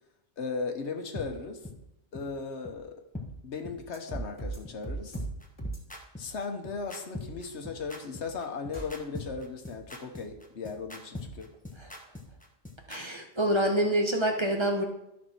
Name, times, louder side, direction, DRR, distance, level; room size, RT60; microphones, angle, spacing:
voice 1, 0.4-1.7 2.1-3.0 3.4-5.2 6.2-11.5, left 4 dB, 85° left, 6 dB, 1.4 m, -37 dB
sound 1, 1.2-1.3 1.6-1.8 2.1-2.2 2.7-2.8 3.1-3.3 3.6-3.8 4.1-4.2 4.7-4.8 5.1-13.0, left 2 dB, 10° left, 1.1 m, -41 dB
sound 2, 3.9-4.6 4.8-5.3 5.6-5.8 8.7-8.9, right 3 dB, 25° left, 2.5 m, -35 dB
voice 2, 12.9-14.8, right 1 dB, 25° right, 3 dB, 1.1 m, -27 dB
13.0 x 6.0 x 4.5 m, 0.85 s
omnidirectional pair, 1.1 m